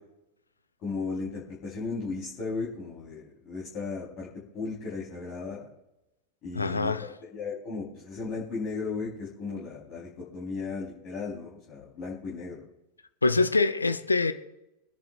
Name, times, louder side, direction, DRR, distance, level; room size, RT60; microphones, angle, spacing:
voice 1, 0.8-4.3 4.5-5.7 6.4-6.9 7.3-12.6, left 4 dB, 35° left, 3.9 m, -35 dB
voice 2, 6.5-7.1 13.2-14.3, left 3 dB, 80° left, 0.7 m, -24 dB
25.0 x 10.5 x 2.5 m
figure-of-eight pair, 90°, 0 cm